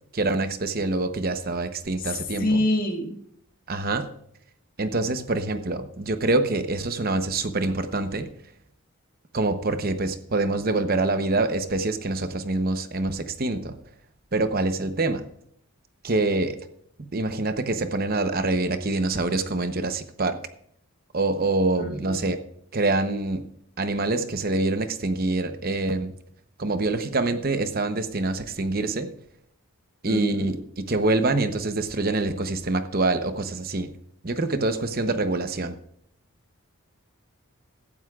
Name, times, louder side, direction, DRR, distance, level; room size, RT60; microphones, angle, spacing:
voice 1, 0.1-2.6 3.7-4.1 4.8-8.3 9.3-13.7 14.3-15.3 16.0-16.6 17.1-20.4 21.1-22.4 22.7-23.4 23.8-26.1 26.6-29.1 30.0-33.9 34.2-35.8, right 2 dB, 40° right, 9 dB, 0.9 m, -25 dB
voice 2, 2.0-3.2 21.8-22.2 30.0-30.5, left 1 dB, 40° left, 3 dB, 1.7 m, -27 dB
16.5 x 12.0 x 2.4 m, 0.69 s
head